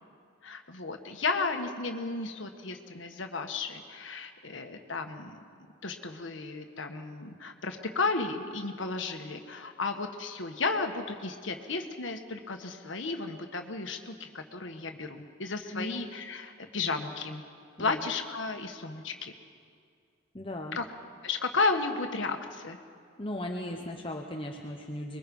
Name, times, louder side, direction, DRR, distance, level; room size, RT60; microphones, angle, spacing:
voice 1, 0.4-5.4 5.8-17.4 17.8-19.3 20.8-20.9 21.2-22.8, left 3 dB, 70° left, 5 dB, 1.5 m, -33 dB
voice 2, 20.3-20.8 23.2-25.2, left 1 dB, 25° left, 2 dB, 1.0 m, -37 dB
25.0 x 22.0 x 5.4 m, 2.2 s
head